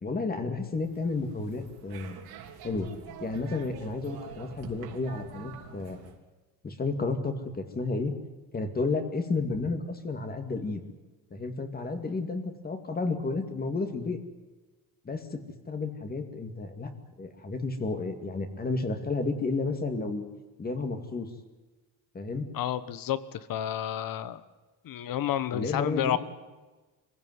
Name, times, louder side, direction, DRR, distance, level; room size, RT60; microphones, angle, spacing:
voice 1, 0.0-2.2 2.6-2.9 3.2-6.1 6.6-8.2 8.5-10.8 11.3-14.2 15.0-16.9 17.2-20.2 20.6-21.3 22.1-22.5 25.5-26.2, left 3 dB, 20° left, 7 dB, 2.4 m, -32 dB
sound 1, 0.7-6.2, right 8 dB, 65° right, 3.3 m, -46 dB
voice 2, 22.5-24.4 24.8-26.2, left 11 dB, 55° left, 15 dB, 1.3 m, -30 dB
24.5 x 16.0 x 9.5 m, 1.2 s
cardioid pair, 150°, 41 cm